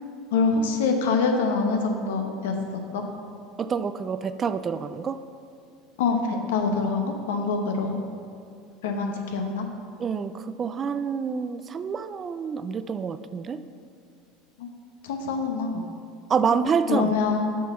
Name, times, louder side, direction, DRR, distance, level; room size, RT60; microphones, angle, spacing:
voice 1, 0.3-3.0 6.0-8.0 8.8-9.7 14.6-14.7 15.0-15.8 16.9-17.5, left 4 dB, 85° left, 3 dB, 0.9 m, -25 dB
voice 2, 3.6-5.2 10.0-13.6 16.3-17.1, right 6 dB, 30° right, 13 dB, 0.3 m, -27 dB
6.2 x 6.1 x 5.6 m, 2.3 s
supercardioid pair, 105°, 0 cm